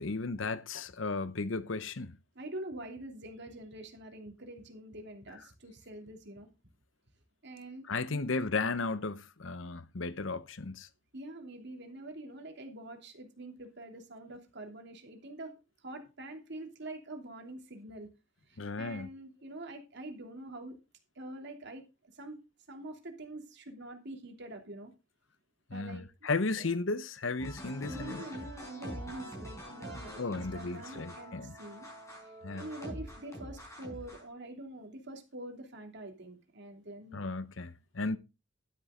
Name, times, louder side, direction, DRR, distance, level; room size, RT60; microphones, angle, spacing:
voice 1, 0.0-2.2 7.9-10.9 18.6-19.1 25.7-28.2 30.2-31.6 32.4-32.7 37.1-38.2, left 3 dB, 70° left, 0.9 m, -35 dB
voice 2, 2.3-6.5 7.4-7.9 8.1-8.3 11.1-15.5 15.8-18.1 18.5-20.8 21.1-21.8 22.1-22.4 22.7-24.9 25.7-26.0 26.6-26.7 27.8-31.9 32.2-37.2, right 1 dB, 60° right, 2.9 m, -45 dB
sound 1, 27.4-34.3, equal, 15° left, 5.8 m, -45 dB
12.0 x 10.0 x 3.7 m
head